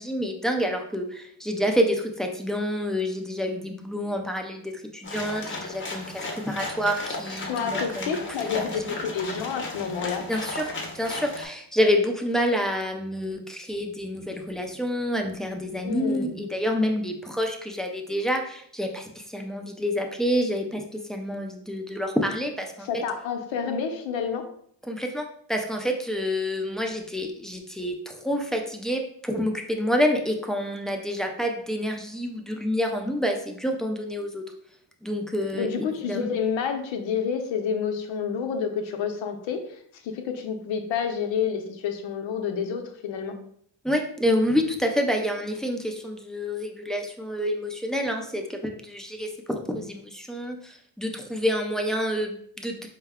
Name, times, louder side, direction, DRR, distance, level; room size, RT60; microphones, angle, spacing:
voice 1, 0.0-8.1 8.5-8.9 10.3-23.0 24.8-34.4 35.0-36.3 43.8-52.9, equal, ahead, 2 dB, 0.4 m, -28 dB
sound 1, 5.0-11.5, left 2 dB, 25° left, 0.7 m, -35 dB
voice 2, 7.5-10.2 15.8-16.3 22.8-24.5 35.5-43.3, left 6 dB, 80° left, 6 dB, 0.7 m, -29 dB
4.6 x 2.2 x 3.5 m, 0.64 s
cardioid pair, 110°, 45 cm